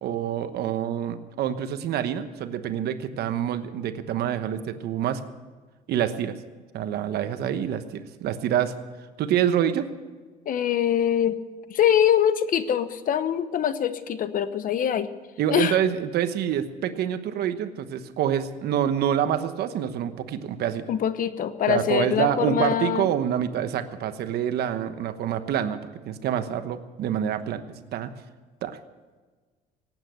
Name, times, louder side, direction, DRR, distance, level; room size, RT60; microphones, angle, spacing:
voice 1, 0.0-5.2 5.9-6.3 6.7-8.7 9.2-9.9 15.4-20.9 21.7-25.8 26.0-28.1 28.6-28.8, right 10 dB, 70° right, 10 dB, 1.1 m, -26 dB
voice 2, 10.5-11.4 11.7-15.1 15.5-15.8 20.9-23.1, left 9 dB, 55° left, 13 dB, 1.0 m, -23 dB
18.0 x 9.1 x 8.0 m, 1.4 s
cardioid pair, 110°, 17 cm